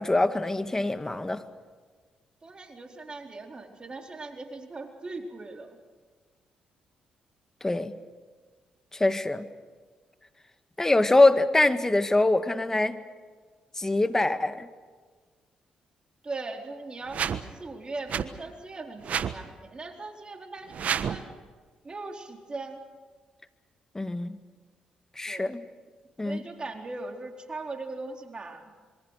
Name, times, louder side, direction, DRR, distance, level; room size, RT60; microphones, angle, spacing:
voice 1, 0.0-1.4 7.6-7.9 8.9-9.5 10.8-13.0 13.8-14.7 23.9-24.4 25.2-25.6 26.2-26.4, left 2 dB, 20° left, 10 dB, 1.9 m, -24 dB
voice 2, 2.4-5.8 16.2-21.3 21.8-22.8 25.3-25.5 26.2-28.7, right 3 dB, 35° right, 3 dB, 4.3 m, -39 dB
sound 1, 17.1-17.4 18.1-18.2 19.0-19.4 20.7-21.2, right 8 dB, 60° right, 1.3 m, -29 dB
26.0 x 23.5 x 6.7 m, 1.5 s
supercardioid pair, 55°, 3 cm